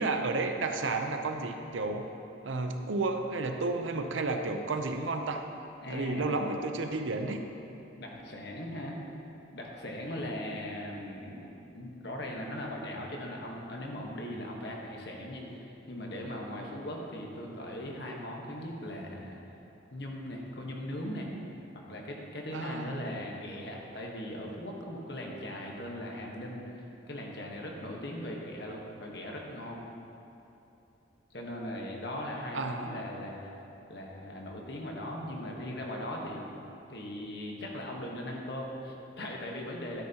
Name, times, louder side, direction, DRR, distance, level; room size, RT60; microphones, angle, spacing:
voice 1, 0.0-2.0 2.4-5.4 5.9-7.4 22.5-23.0 32.5-33.0, right 3 dB, 80° right, 5 dB, 0.7 m, -32 dB
voice 2, 5.8-6.3 8.0-9.0 9.5-19.4 19.9-21.3 21.9-29.8 31.3-33.5 33.9-36.4 36.9-40.0, left 1 dB, 55° left, -1 dB, 1.3 m, -39 dB
11.5 x 9.4 x 2.9 m, 2.8 s
head